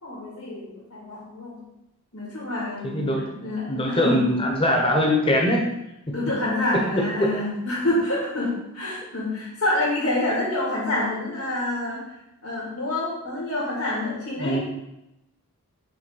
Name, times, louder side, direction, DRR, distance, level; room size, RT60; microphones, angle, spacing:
voice 1, 0.0-1.6 2.1-4.2 6.1-12.0 12.4-14.6, left 1 dB, 80° left, -8 dB, 2.3 m, -27 dB
voice 2, 2.8-3.2 3.7-5.6 7.2-7.3 14.4-14.6, left 1 dB, 25° left, 1 dB, 1.0 m, -22 dB
6.5 x 3.5 x 5.5 m, 0.88 s
head